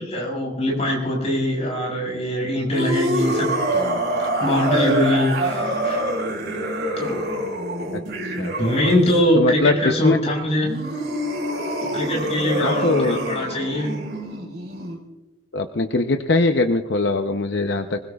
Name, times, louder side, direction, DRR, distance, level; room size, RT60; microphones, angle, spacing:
voice 1, 0.0-3.9 4.4-6.0 7.0-7.3 8.6-10.7 11.9-14.0, left 1 dB, 30° left, -2 dB, 6.3 m, -22 dB
sound 1, 2.7-9.2 10.6-15.0, right 1 dB, 55° right, 5.1 m, -26 dB
voice 2, 9.3-10.2 12.6-13.2 15.5-18.0, left 3 dB, 60° left, 5 dB, 0.7 m, -21 dB
25.0 x 20.5 x 2.4 m, 1.1 s
head